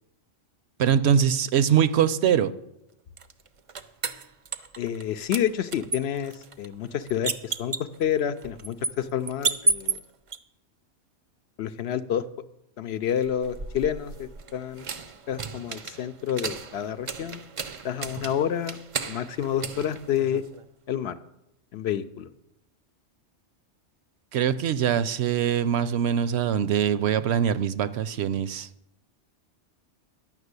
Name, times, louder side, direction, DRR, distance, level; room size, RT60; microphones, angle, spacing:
voice 1, 0.8-2.5 24.3-28.7, right 8 dB, 70° right, 15 dB, 0.8 m, -23 dB
sound 1, 3.2-5.0 5.3-10.4 13.2-20.7, right 5 dB, 45° right, 0.4 m, -33 dB
voice 2, 4.8-10.0 11.6-12.3 12.8-14.9 15.3-17.4 17.8-18.8 19.1-20.4 20.9-21.2 21.7-22.3, left 9 dB, 65° left, 11 dB, 0.8 m, -29 dB
11.0 x 6.1 x 8.0 m, 0.84 s
omnidirectional pair, 1.2 m